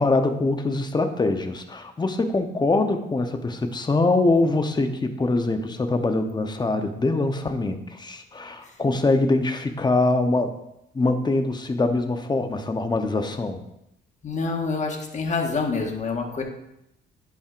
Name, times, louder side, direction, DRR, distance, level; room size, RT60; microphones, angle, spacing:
voice 1, 0.0-10.5 10.9-13.6, left 2 dB, 20° left, 7 dB, 0.8 m, -23 dB
voice 2, 14.2-16.4, left 4 dB, 35° left, 2 dB, 1.5 m, -27 dB
10.5 x 5.9 x 2.5 m, 0.83 s
cardioid pair, 90°, 20 cm